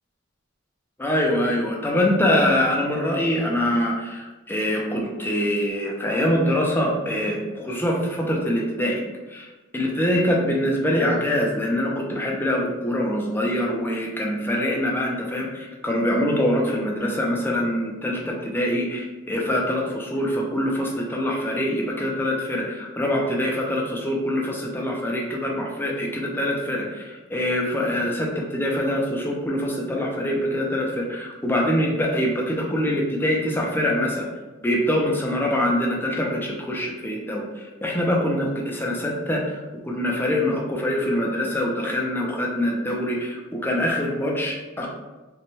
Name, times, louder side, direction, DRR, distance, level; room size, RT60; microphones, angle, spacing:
voice 1, 1.0-9.0 9.3-9.5 9.7-34.2 34.6-39.6 39.8-44.9, left 1 dB, 10° left, -2 dB, 0.4 m, -24 dB
2.7 x 2.1 x 3.0 m, 1.2 s
head